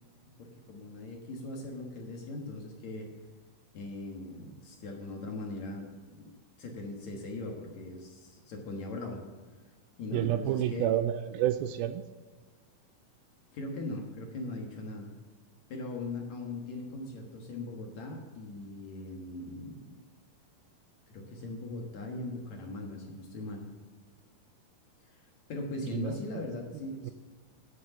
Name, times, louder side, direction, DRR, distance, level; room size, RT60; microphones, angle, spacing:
voice 1, 0.4-3.1 3.7-9.2 10.0-10.9 13.5-15.1 15.7-20.0 21.1-23.7 25.1-25.2 25.5-27.1, left 2 dB, 60° left, 1 dB, 2.2 m, -40 dB
voice 2, 10.1-12.0 25.9-26.2 27.0-27.1, right 12 dB, 80° right, 11 dB, 2.2 m, -29 dB
9.9 x 9.4 x 5.9 m, 1.4 s
omnidirectional pair, 4.5 m